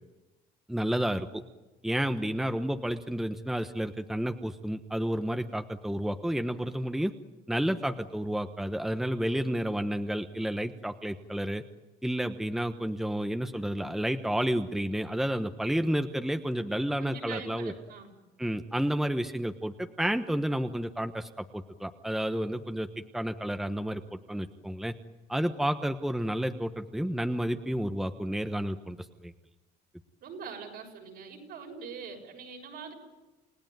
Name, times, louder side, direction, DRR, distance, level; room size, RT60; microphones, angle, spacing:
voice 1, 0.7-1.4 1.8-7.1 7.5-11.6 12.0-17.7 18.4-22.9 23.1-24.9 25.3-29.0 29.2-29.3, equal, ahead, 7 dB, 1.1 m, -31 dB
voice 2, 17.0-18.1 30.2-32.9, right 5 dB, 70° right, 2 dB, 7.0 m, -43 dB
29.5 x 17.0 x 9.2 m, 1.1 s
cardioid pair, 110°, 17 cm